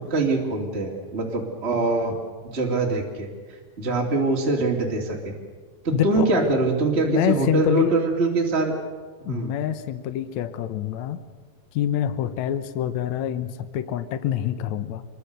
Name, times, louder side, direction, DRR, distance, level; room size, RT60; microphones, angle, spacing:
voice 1, 0.0-2.2 2.4-3.3 3.8-5.3 5.8-8.7 9.2-9.5, right 3 dB, 20° right, -1 dB, 2.8 m, -23 dB
voice 2, 5.9-6.5 7.1-7.9 9.3-11.2 11.7-15.0, left 10 dB, 65° left, 11 dB, 2.2 m, -26 dB
26.5 x 22.5 x 6.8 m, 1.5 s
omnidirectional pair, 3.9 m